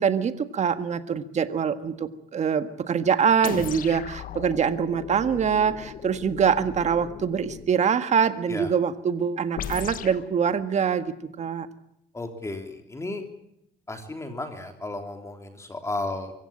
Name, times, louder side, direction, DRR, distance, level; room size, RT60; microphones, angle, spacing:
voice 1, 0.0-11.7, right 7 dB, 45° right, 11 dB, 1.6 m, -24 dB
sound 1, 3.4-7.7 9.6-10.3, left 8 dB, 55° left, 1.5 m, -37 dB
voice 2, 12.1-13.2 13.9-16.3, left 2 dB, 15° left, 6 dB, 3.3 m, -33 dB
24.5 x 16.0 x 8.9 m, 0.79 s
cardioid pair, 110°, 17 cm